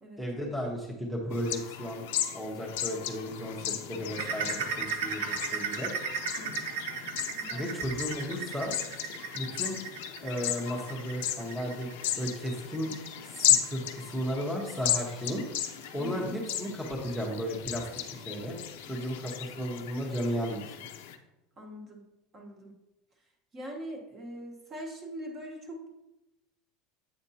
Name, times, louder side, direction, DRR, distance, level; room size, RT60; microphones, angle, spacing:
voice 1, 0.2-2.0 2.3-5.9 7.5-8.7 9.3-9.8 10.2-11.9 12.2-15.4 15.9-17.8 18.1-18.6 18.8-20.6, equal, ahead, -4 dB, 0.9 m, -34 dB
sound 1, 1.3-21.2, left 11 dB, 85° left, 0.6 m, -35 dB
sound 2, 4.2-15.4 15.8-16.0 16.4-16.5 17.1-17.2, right 6 dB, 85° right, 0.7 m, -36 dB
voice 2, 7.4-7.7 16.0-16.3 21.6-22.0 22.3-22.7 23.5-25.9, right 1 dB, 25° right, 1 dB, 1.2 m, -42 dB
8.0 x 5.1 x 2.8 m, 0.96 s
supercardioid pair, 150°, 0 cm